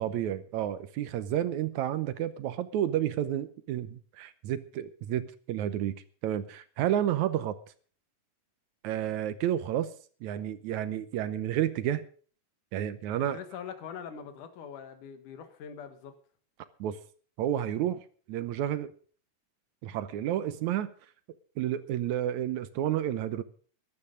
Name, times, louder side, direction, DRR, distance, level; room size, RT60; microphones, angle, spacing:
voice 1, 0.0-5.9 6.2-7.6 8.8-9.9 10.2-12.0 12.7-13.4 16.8-17.0 17.4-18.0 18.3-18.9 19.8-20.9 21.6-23.4, right 11 dB, 75° right, 13 dB, 2.1 m, -30 dB
voice 2, 13.2-16.1, left 7 dB, 80° left, 8 dB, 3.1 m, -43 dB
14.5 x 12.0 x 5.2 m, 0.43 s
omnidirectional pair, 3.5 m